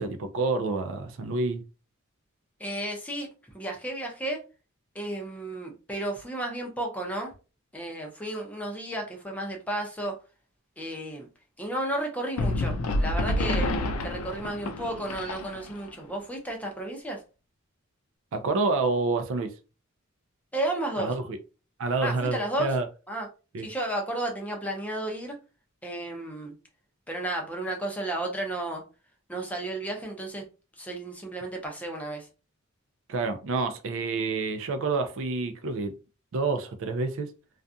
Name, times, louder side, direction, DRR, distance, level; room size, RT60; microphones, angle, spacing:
voice 1, 0.0-1.6 18.3-19.5 21.0-21.4 21.8-22.9 23.5-23.7 33.1-35.9 36.3-37.3, right 3 dB, 65° right, 0.4 m, -28 dB
voice 2, 2.6-3.3 3.5-4.4 4.9-7.3 7.7-10.2 10.8-11.3 11.6-13.7 14.0-17.2 20.5-21.1 22.0-22.7 23.1-23.3 23.6-25.4 25.8-26.5 27.1-28.8 29.3-30.4 30.8-32.3, right 1 dB, 5° left, 0.6 m, -33 dB
sound 1, 12.4-15.9, left 1 dB, 90° left, 0.4 m, -28 dB
2.4 x 2.2 x 2.6 m
head